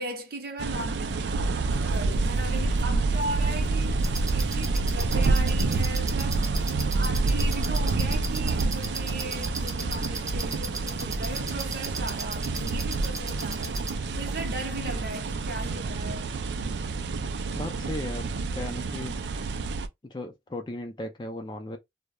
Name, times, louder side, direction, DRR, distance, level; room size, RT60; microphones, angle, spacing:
voice 1, 0.0-1.3 1.9-6.5 6.9-13.9 14.1-16.3, right 2 dB, 55° right, 0.7 m, -37 dB
sound 1, 0.6-19.9, right 3 dB, 80° right, 0.4 m, -28 dB
sound 2, 1.7-15.3, left 1 dB, 80° left, 0.7 m, -42 dB
sound 3, 4.0-13.9, right 3 dB, 20° right, 0.6 m, -37 dB
voice 2, 17.5-19.2 20.0-21.8, left 2 dB, 25° left, 0.4 m, -36 dB
2.3 x 2.0 x 2.8 m
head